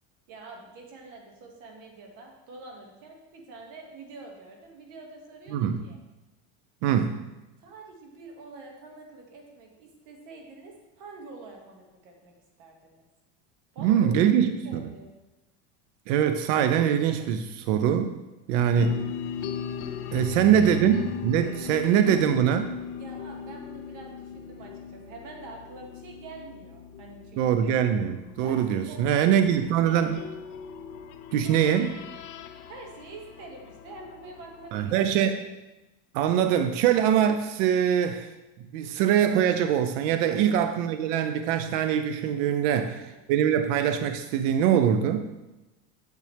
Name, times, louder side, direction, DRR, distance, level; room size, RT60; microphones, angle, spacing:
voice 1, 0.3-6.0 7.6-13.0 13.7-14.1 14.3-15.1 18.7-19.0 20.2-20.8 22.0-22.2 22.9-27.7 28.4-29.4 29.8-30.1 32.6-35.4 40.3-40.6 42.7-42.8 43.1-43.2, right 3 dB, 55° right, 1 dB, 2.1 m, -46 dB
voice 2, 5.5-5.8 6.8-7.2 13.8-14.8 16.1-18.1 18.5-19.0 20.1-22.7 27.4-30.1 31.3-32.0 34.7-35.4 36.1-38.3 38.7-42.9 43.3-45.3, right 9 dB, 80° right, 9 dB, 0.7 m, -23 dB
sound 1, 18.8-34.7, left 8 dB, 85° left, 0.8 m, -39 dB
9.4 x 6.8 x 3.4 m, 1.0 s
cardioid pair, 145°, 37 cm